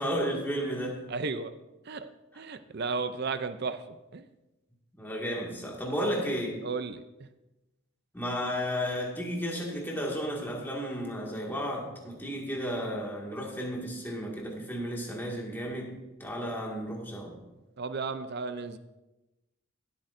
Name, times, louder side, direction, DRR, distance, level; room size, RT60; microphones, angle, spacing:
voice 1, 0.0-1.1 2.3-2.4 4.9-6.6 8.1-17.3, equal, 10° left, -2 dB, 2.0 m, -33 dB
voice 2, 1.1-1.5 1.9-2.1 2.4-3.8 4.1-4.2 6.6-7.0 17.8-18.8, right 4 dB, 50° right, 11 dB, 0.5 m, -33 dB
17.5 x 8.6 x 2.6 m, 1.0 s
head